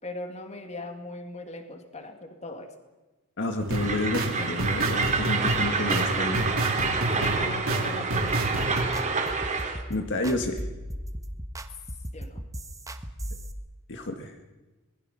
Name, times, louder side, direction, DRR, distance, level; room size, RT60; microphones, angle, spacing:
voice 1, 0.0-2.7 7.1-9.2 12.1-12.5, left 1 dB, 30° left, 6 dB, 2.3 m, -39 dB
voice 2, 3.4-6.5 9.9-10.6 13.9-14.3, left 2 dB, 60° left, 5 dB, 1.8 m, -30 dB
sound 1, 3.6-8.8, right 1 dB, 65° right, 3.7 m, -30 dB
Train, 3.7-9.8, right 4 dB, 35° right, 3.2 m, -28 dB
sound 2, 8.3-13.5, equal, 15° right, 1.3 m, -37 dB
26.0 x 20.0 x 5.7 m, 1.2 s
head